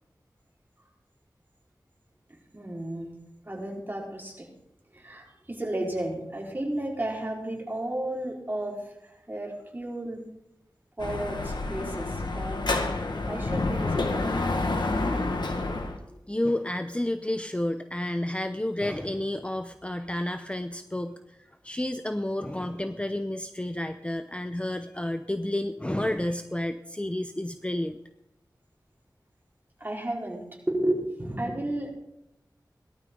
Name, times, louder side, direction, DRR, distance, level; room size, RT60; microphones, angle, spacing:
voice 1, 2.5-3.1 3.4-4.5 4.9-10.2 11.0-12.6 13.3-14.3 29.8-31.9, right 1 dB, 25° right, -2 dB, 4.5 m, -33 dB
Dog / Motorcycle, 11.0-16.0, left 2 dB, 80° left, 1.6 m, -28 dB
voice 2, 16.1-28.0, left 1 dB, 15° left, 8 dB, 0.7 m, -31 dB
18.0 x 12.5 x 3.9 m, 0.87 s
wide cardioid pair, 70°, 7 cm